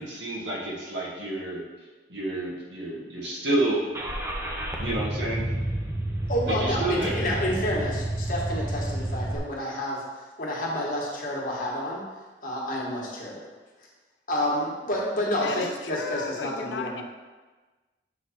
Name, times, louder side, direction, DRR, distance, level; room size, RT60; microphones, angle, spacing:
voice 1, 0.0-3.8 4.8-5.5 6.5-7.3, right 2 dB, 80° right, -4 dB, 1.5 m, -30 dB
Car / Engine starting, 3.9-9.4, right 1 dB, 15° right, 0.6 m, -30 dB
voice 2, 6.3-12.0 12.4-13.4 14.3-17.0, left 1 dB, 50° left, -3 dB, 1.3 m, -29 dB
voice 3, 15.4-17.0, left 4 dB, 85° left, 6 dB, 0.5 m, -34 dB
6.6 x 3.3 x 4.3 m, 1.3 s
head